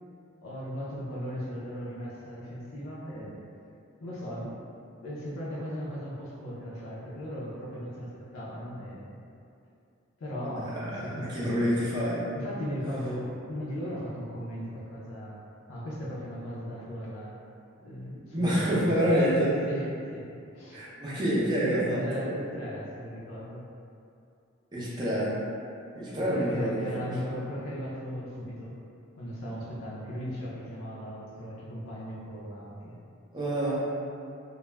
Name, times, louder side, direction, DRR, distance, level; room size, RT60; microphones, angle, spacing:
voice 1, 0.4-3.4 4.0-4.7 5.0-9.2 10.2-11.9 12.3-15.4 15.7-17.4 17.8-20.8 21.6-23.7 26.3-28.8 29.1-33.0, equal, 85° left, -6 dB, 0.5 m, -37 dB
voice 2, 10.7-12.3 18.3-19.5 20.7-22.2 24.7-25.4 25.9-27.1 33.3-33.9, equal, 20° right, -9 dB, 0.5 m, -27 dB
2.2 x 2.0 x 3.1 m, 2.5 s
head